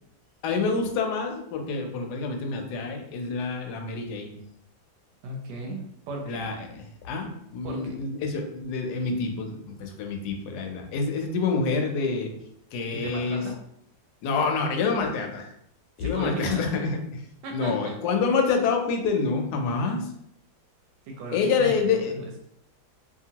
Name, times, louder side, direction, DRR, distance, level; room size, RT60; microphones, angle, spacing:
voice 1, 0.4-4.4 6.3-12.3 12.7-13.5 14.2-15.5 16.0-17.2 17.5-20.1 21.3-22.1, left 4 dB, 75° left, 3 dB, 1.1 m, -27 dB
voice 2, 5.2-6.5 7.6-8.0 12.9-13.6 16.0-16.7 17.4-17.9 21.1-22.3, right 2 dB, 90° right, 0 dB, 1.2 m, -36 dB
2.8 x 2.6 x 2.8 m, 0.74 s
omnidirectional pair, 1.8 m